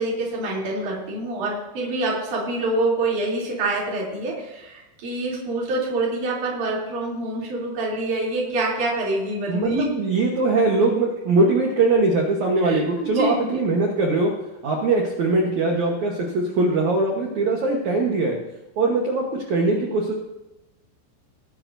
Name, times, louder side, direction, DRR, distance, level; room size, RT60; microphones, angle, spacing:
voice 1, 0.0-9.8 12.6-13.6, right 2 dB, 45° right, -4 dB, 4.3 m, -26 dB
voice 2, 9.5-14.3 14.6-18.4 18.8-20.1, right 3 dB, 75° right, 0 dB, 1.7 m, -21 dB
20.5 x 11.0 x 2.7 m, 1.0 s
omnidirectional pair, 5.5 m